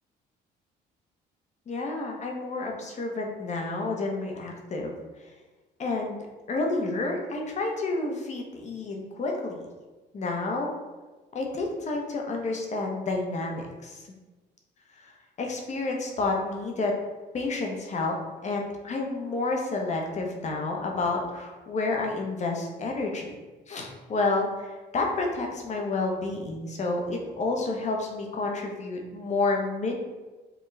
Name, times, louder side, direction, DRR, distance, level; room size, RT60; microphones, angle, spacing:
voice 1, 1.7-4.9 5.8-9.7 10.1-10.7 11.3-14.0 15.4-16.9 17.3-18.1 18.4-23.3 23.7-30.0, left 3 dB, 40° left, 1 dB, 0.8 m, -30 dB
4.5 x 2.3 x 3.2 m, 1.2 s
cardioid pair, 90°, 18 cm